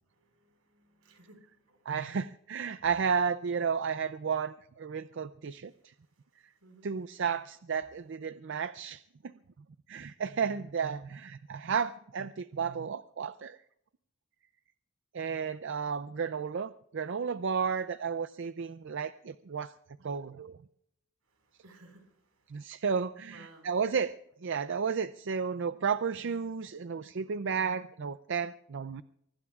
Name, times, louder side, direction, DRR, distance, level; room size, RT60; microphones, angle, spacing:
voice 1, 0.1-1.9 5.7-6.9 21.2-22.8 23.3-23.8, right 2 dB, 85° right, 4 dB, 5.0 m, -60 dB
voice 2, 1.9-5.9 6.8-9.0 9.9-13.6 15.1-19.7 20.0-20.6 22.5-24.1 24.4-29.0, right 6 dB, 55° right, 12 dB, 0.4 m, -33 dB
24.5 x 19.0 x 2.4 m, 0.74 s
head